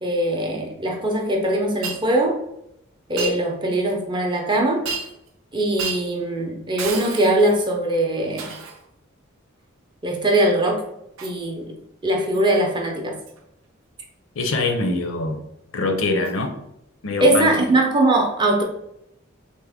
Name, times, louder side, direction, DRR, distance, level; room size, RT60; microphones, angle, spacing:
voice 1, 0.0-2.4 3.1-4.8 5.5-8.5 10.0-10.8 11.2-11.8 12.0-13.2 17.2-18.6, right 1 dB, 25° right, 1 dB, 0.5 m, -21 dB
Shatter, 1.8-2.0 3.2-3.4 4.8-5.3 5.8-6.1 6.8-7.6 8.4-8.8 11.2-11.4 12.3-12.5 13.3-13.4 16.2-16.3 17.4-17.5, right 5 dB, 75° right, 0.5 m, -31 dB
voice 2, 14.4-15.4 15.7-16.6 17.0-17.5, left 2 dB, 80° left, 5 dB, 0.5 m, -23 dB
3.5 x 2.0 x 3.4 m, 0.80 s
head